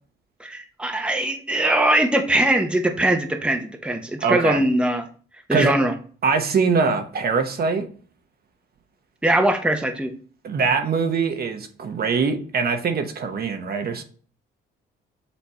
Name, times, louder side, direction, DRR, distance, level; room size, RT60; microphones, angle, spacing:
voice 1, 0.4-5.1 5.5-5.9 9.2-10.1, right 1 dB, 5° right, 5 dB, 0.9 m, -21 dB
voice 2, 4.2-4.6 5.5-5.7 6.2-7.9 10.4-14.0, right 5 dB, 50° right, 6 dB, 1.0 m, -23 dB
7.0 x 3.4 x 4.3 m, 0.42 s
cardioid pair, 90°, 20 cm